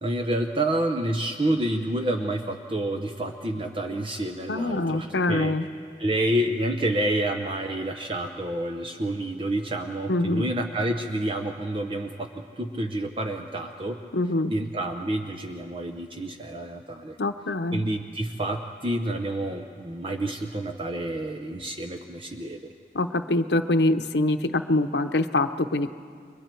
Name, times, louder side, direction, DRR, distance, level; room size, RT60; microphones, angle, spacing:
voice 1, 0.0-5.5 6.0-12.3 12.6-14.0 14.5-17.2 17.7-22.7, right 1 dB, 30° right, 5 dB, 0.8 m, -28 dB
voice 2, 4.5-5.7 10.1-10.5 14.1-14.5 17.2-17.8 22.9-25.9, left 2 dB, 75° left, 9 dB, 0.8 m, -24 dB
30.0 x 22.5 x 4.5 m, 2.3 s
head